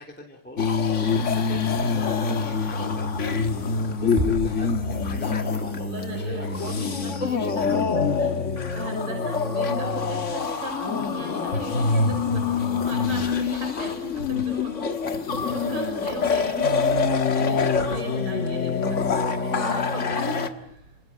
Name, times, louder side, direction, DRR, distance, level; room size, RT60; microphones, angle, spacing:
voice 1, 0.0-6.6 7.4-8.0, left 1 dB, 5° left, 0 dB, 3.0 m, -41 dB
sound 1, 0.6-20.5, left 5 dB, 40° left, 1.1 m, -25 dB
voice 2, 1.6-1.9 5.8-8.4 8.7-21.0, equal, 45° right, 2 dB, 6.9 m, -36 dB
Bass drum, 4.2-5.6, right 2 dB, 25° right, 1.2 m, -32 dB
28.5 x 27.0 x 7.4 m, 0.75 s
omnidirectional pair, 3.4 m